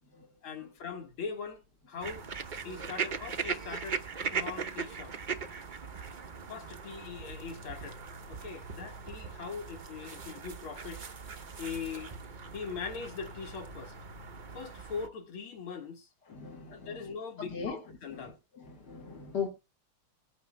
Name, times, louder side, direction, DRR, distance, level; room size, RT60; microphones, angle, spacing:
voice 1, 0.4-1.6 1.9-2.3 2.6-4.0 4.3-5.2 6.5-8.0 8.3-11.0 11.6-12.1 12.5-13.9 14.5-16.1 16.7-18.4, left 5 dB, 75° left, 2.5 m, -41 dB
sound 1, 2.0-15.1, right 5 dB, 80° right, 0.4 m, -40 dB
voice 2, 16.3-17.0 17.5-17.8 18.1-18.2 18.6-19.5, left 6 dB, 55° left, 2.0 m, -38 dB
21.0 x 9.3 x 2.2 m
omnidirectional pair, 2.3 m